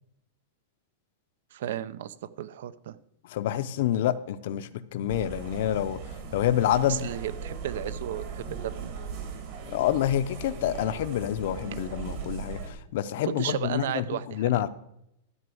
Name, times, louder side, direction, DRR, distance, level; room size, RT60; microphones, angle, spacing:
voice 1, 1.5-3.0 6.9-9.0 13.2-14.7, right 11 dB, 60° right, 18 dB, 0.6 m, -34 dB
voice 2, 3.3-6.0 6.3-7.1 9.7-14.0 14.3-14.7, left 11 dB, 50° left, 12 dB, 0.6 m, -27 dB
sound 1, 5.1-12.7, right 5 dB, 40° right, 1.8 m, -38 dB
12.5 x 5.3 x 7.8 m, 0.78 s
supercardioid pair, 175°, 0 cm